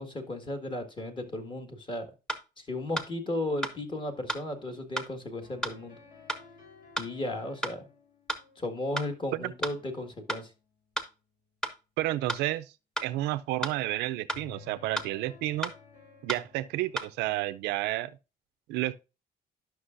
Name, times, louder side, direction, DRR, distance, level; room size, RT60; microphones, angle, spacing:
voice 1, 0.0-2.1 2.6-6.0 7.0-7.9 8.6-10.5, left 1 dB, 30° left, 1.7 m, -35 dB
sound 1, 2.3-2.4 3.0-3.1 3.6-3.8 4.3-4.4 5.0-5.1 5.6-5.8 6.3-6.4 7.0-7.1 7.6-7.8 8.3-8.4 9.0-9.1 9.6-9.8 10.3-10.4 11.0-11.1 11.6-11.8 12.3-12.4 13.0-13.1 13.6-13.8 14.3-14.4 15.0-15.1 15.6-15.8 16.3-16.4 17.0-17.1, equal, 5° left, 0.9 m, -32 dB
sound 2, 5.4-11.3 14.3-17.9, left 5 dB, 55° left, 4.8 m, -55 dB
voice 2, 12.0-12.7 13.0-15.7 16.2-18.2 18.7-18.9, right 16 dB, 90° right, 0.5 m, -31 dB
11.5 x 6.0 x 2.5 m
cardioid pair, 110°, 17 cm